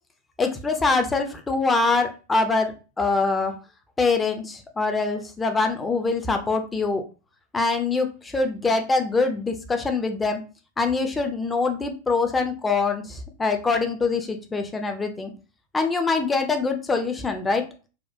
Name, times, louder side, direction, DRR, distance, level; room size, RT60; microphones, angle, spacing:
voice 1, 0.4-3.5 4.0-7.0 7.5-10.4 10.8-15.3 15.7-17.6, left 3 dB, 15° left, 5 dB, 0.6 m, -24 dB
4.2 x 2.2 x 2.6 m, 0.34 s
figure-of-eight pair, 90°, 0 cm